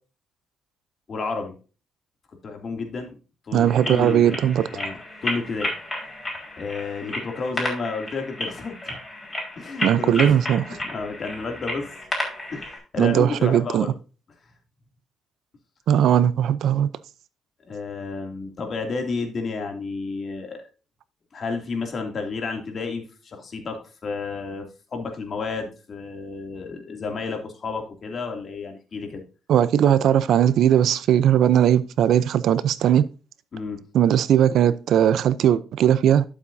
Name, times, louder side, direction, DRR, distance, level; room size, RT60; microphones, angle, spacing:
voice 1, 1.1-1.5 2.4-3.1 3.5-4.4 4.7-5.7 6.6-9.0 9.6-10.4 10.7-11.9 12.5-13.9 16.7-16.9 17.7-20.6 21.3-29.2 33.5-33.8, left 4 dB, 50° left, 2.6 m, -31 dB
voice 2, 3.5-4.7 9.8-10.6 13.0-13.9 15.9-16.9 29.5-33.0 33.9-36.2, right 10 dB, 75° right, 0.6 m, -18 dB
sound 1, 3.7-12.8, left 1 dB, 20° left, 5.1 m, -32 dB
12.0 x 7.3 x 2.7 m
cardioid pair, 90°, 0 cm